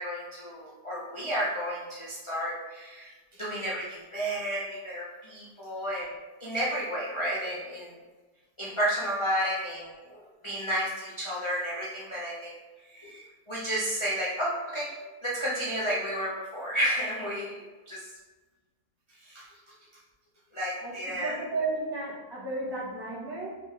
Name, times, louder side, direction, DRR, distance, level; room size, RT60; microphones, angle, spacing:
voice 1, 0.0-3.1 3.4-6.1 6.4-7.9 8.6-12.5 12.8-14.9 15.2-18.1 19.2-19.5 20.5-21.3, equal, 35° left, -7 dB, 0.4 m, -32 dB
voice 2, 20.8-23.6, right 2 dB, 15° right, -8 dB, 1.0 m, -33 dB
4.1 x 3.1 x 3.2 m, 1.2 s
omnidirectional pair, 1.6 m